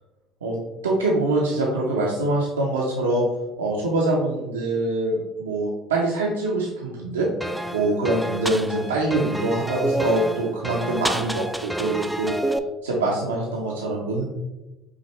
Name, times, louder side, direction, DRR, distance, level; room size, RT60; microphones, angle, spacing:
voice 1, 0.8-3.2 3.6-7.3 7.7-12.5 12.8-14.2, right 2 dB, 85° right, -3 dB, 0.6 m, -24 dB
sound 1, 7.4-12.6, right 1 dB, ahead, 0.3 m, -28 dB
5.6 x 2.5 x 3.1 m, 1.0 s
hypercardioid pair, 65°, 0 cm